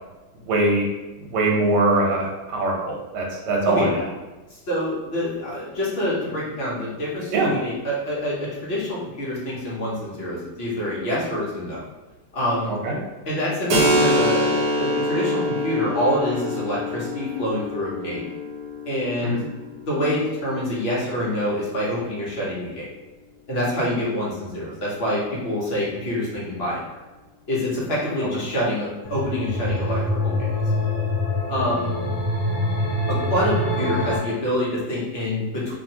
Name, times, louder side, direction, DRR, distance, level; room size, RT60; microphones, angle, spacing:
voice 1, 0.4-0.9 1.2-3.9 7.3-7.5 12.7-12.9 19.2-19.4, right 2 dB, 85° right, -2 dB, 1.3 m, -22 dB
voice 2, 4.5-11.8 12.3-12.8 13.3-18.2 18.8-19.4 19.9-22.8 23.5-26.8 27.5-30.4 31.5-31.9 33.1-35.7, equal, 45° left, -6 dB, 0.9 m, -26 dB
Keyboard (musical), 13.7-21.1, equal, 70° right, 1.0 m, -25 dB
sound 1, 29.0-34.2, left 1 dB, 65° left, 1.3 m, -25 dB
2.8 x 2.5 x 2.7 m, 1.2 s
omnidirectional pair, 1.8 m